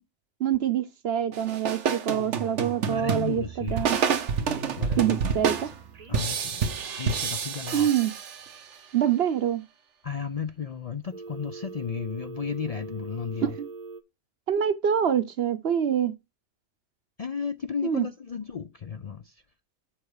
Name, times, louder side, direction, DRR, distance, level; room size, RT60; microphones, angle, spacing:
voice 1, 0.4-4.0 5.0-5.7 7.7-8.1 8.9-9.6 13.4-13.7 14.5-16.1 17.8-18.1, right 9 dB, 65° right, 1.0 m, -25 dB
sound 1, 1.3-8.7, right 6 dB, 90° right, 1.3 m, -29 dB
voice 2, 2.8-3.9 4.8-5.7 6.1-6.7 7.0-7.9 10.0-13.5 17.2-19.4, left 6 dB, 50° left, 0.4 m, -34 dB
Telephone, 3.6-5.3 5.9-7.6 11.1-14.0, right 4 dB, 40° right, 0.9 m, -43 dB
7.2 x 5.1 x 4.7 m
omnidirectional pair, 1.2 m